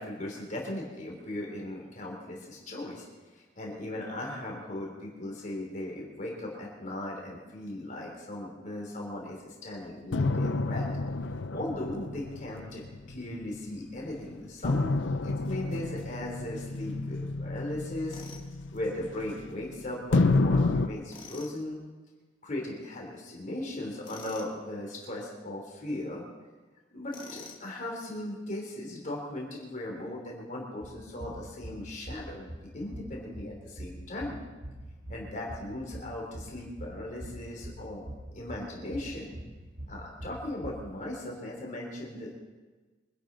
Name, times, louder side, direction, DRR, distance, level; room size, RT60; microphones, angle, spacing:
voice 1, 0.0-3.1 3.3-10.9 11.5-12.8 13.1-15.0 15.2-18.2 18.7-21.8 22.4-26.2 26.9-34.4 35.1-39.4 39.9-42.4, left 1 dB, 40° left, -2 dB, 3.4 m, -38 dB
sound 1, 10.1-13.8 14.6-19.6 20.1-20.9, left 3 dB, 80° left, 0.7 m, -29 dB
Tools, 18.1-18.5 21.1-21.6 24.0-24.5 27.1-27.7, left 3 dB, 25° left, 2.2 m, -46 dB
sound 2, 30.8-40.7, right 1 dB, 50° right, 2.6 m, -44 dB
24.5 x 12.0 x 4.0 m, 1.3 s
head